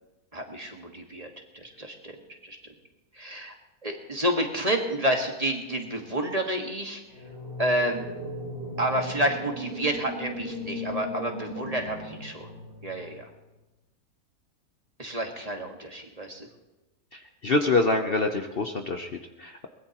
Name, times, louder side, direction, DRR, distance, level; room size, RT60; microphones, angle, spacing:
voice 1, 0.3-2.6 3.1-3.5 3.8-7.0 7.6-8.0 8.8-12.5 12.8-13.3 15.0-16.5, right 1 dB, 25° right, 2 dB, 1.8 m, -29 dB
sound 1, 7.1-13.2, left 1 dB, 80° right, 5.2 m, -37 dB
voice 2, 17.1-19.7, left 3 dB, 45° left, 4 dB, 1.0 m, -26 dB
22.5 x 20.0 x 3.0 m, 1.0 s
omnidirectional pair, 1.6 m